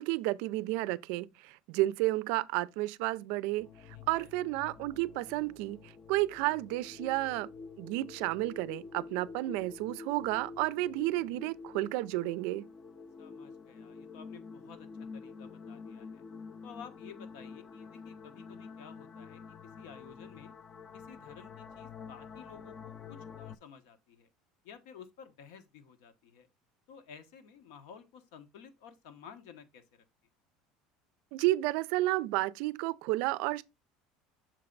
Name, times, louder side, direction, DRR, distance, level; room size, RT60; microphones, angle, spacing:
voice 1, 0.0-3.7 4.1-7.5 7.8-12.7 31.3-33.6, right 18 dB, 60° right, 0.4 m, -31 dB
sound 1, 3.6-23.6, left 5 dB, 20° left, 0.4 m, -48 dB
voice 2, 3.9-4.3 13.2-16.2 16.6-20.5 20.9-24.3 24.6-26.5 26.9-30.0, left 7 dB, 75° left, 1.0 m, -53 dB
6.4 x 4.3 x 3.8 m
cardioid pair, 180°, 2 cm